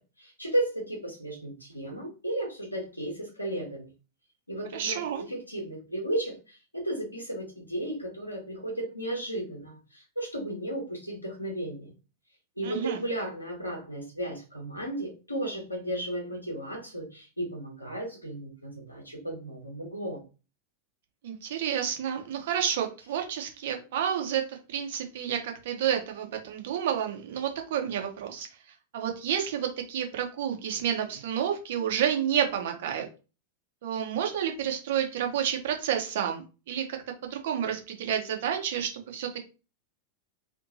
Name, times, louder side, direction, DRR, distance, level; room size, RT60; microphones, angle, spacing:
voice 1, 0.2-3.9 4.5-11.9 12.6-20.2, right 1 dB, 85° left, 0 dB, 1.0 m, -34 dB
voice 2, 4.7-5.2 12.6-13.0 21.2-28.5 28.9-33.1 33.8-37.0 37.3-39.4, right 9 dB, 55° right, 4 dB, 0.7 m, -30 dB
2.6 x 2.6 x 2.6 m, 0.32 s
figure-of-eight pair, 90°, 0 cm